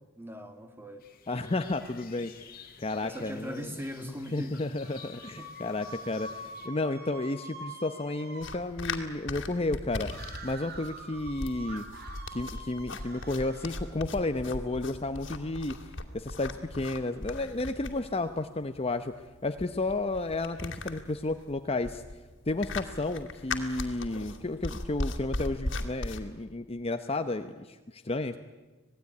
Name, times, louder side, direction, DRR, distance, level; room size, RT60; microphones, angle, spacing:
voice 1, 0.2-1.0 3.0-4.7 5.4-5.5, equal, 10° right, 7 dB, 2.1 m, -40 dB
sound 1, 1.0-6.7, left 7 dB, 45° left, 2.2 m, -52 dB
voice 2, 1.3-2.5 2.8-3.7 4.0-11.8 12.3-15.8 16.1-19.1 19.4-22.0 22.5-28.4, left 2 dB, 30° left, 8 dB, 0.8 m, -32 dB
sound 2, 4.8-8.6 10.0-13.9, right 1 dB, 50° right, 3.5 m, -45 dB
sound 3, 8.4-26.2, left 2 dB, 65° left, 2.5 m, -38 dB
26.5 x 18.5 x 9.7 m, 1.2 s
head